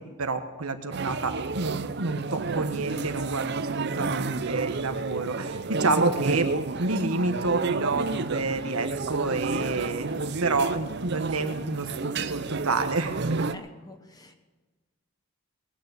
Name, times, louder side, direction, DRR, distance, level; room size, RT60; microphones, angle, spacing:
voice 1, 0.2-6.5 6.8-10.1 10.4-13.5, right 3 dB, 80° right, 7 dB, 1.4 m, -29 dB
sound 1, 0.9-13.5, right 4 dB, 50° right, 0.6 m, -31 dB
voice 2, 13.5-14.4, left 1 dB, 15° left, 7 dB, 1.0 m, -47 dB
19.5 x 9.6 x 6.6 m, 1.3 s
head